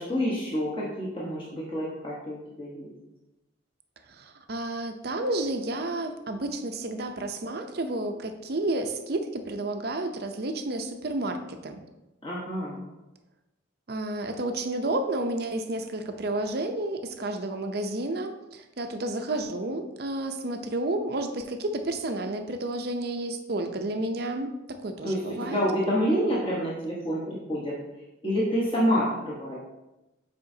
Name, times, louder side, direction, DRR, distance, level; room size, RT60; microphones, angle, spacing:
voice 1, 0.0-2.9 12.2-12.8 25.0-27.8 28.2-29.6, equal, 25° left, -7 dB, 1.2 m, -28 dB
voice 2, 4.1-11.8 13.9-24.5 24.8-25.6, right 2 dB, 55° right, 6 dB, 0.6 m, -31 dB
7.8 x 4.9 x 2.7 m, 0.99 s
head